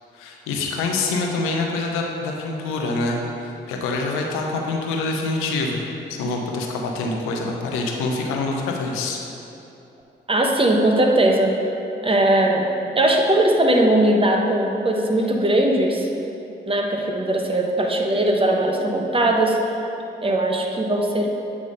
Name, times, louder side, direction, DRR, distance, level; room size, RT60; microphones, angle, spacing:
voice 1, 0.1-9.2, left 3 dB, 90° left, 1 dB, 0.7 m, -26 dB
voice 2, 10.3-11.6 12.0-12.7 12.9-16.1 16.7-19.6 20.2-21.4, right 1 dB, 25° right, 1 dB, 1.1 m, -19 dB
8.3 x 3.5 x 5.3 m, 2.9 s
supercardioid pair, 50°, 21 cm